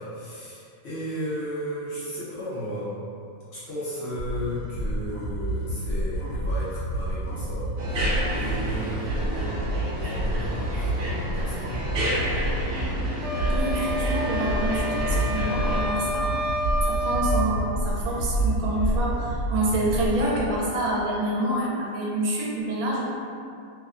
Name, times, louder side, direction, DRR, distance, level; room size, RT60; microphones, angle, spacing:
voice 1, 0.0-2.9 3.5-8.0 8.3-9.6 9.9-11.7, equal, 60° left, -10 dB, 0.8 m, -34 dB
sound 1, 4.0-20.4, right 1 dB, 75° left, 1.1 m, -28 dB
sound 2, 7.8-15.8, equal, 70° right, 0.5 m, -31 dB
sound 3, 13.2-17.4, equal, 25° right, 0.7 m, -29 dB
voice 2, 13.5-23.1, right 1 dB, 85° right, -5 dB, 1.1 m, -27 dB
2.9 x 2.1 x 2.4 m, 2.4 s
omnidirectional pair, 1.5 m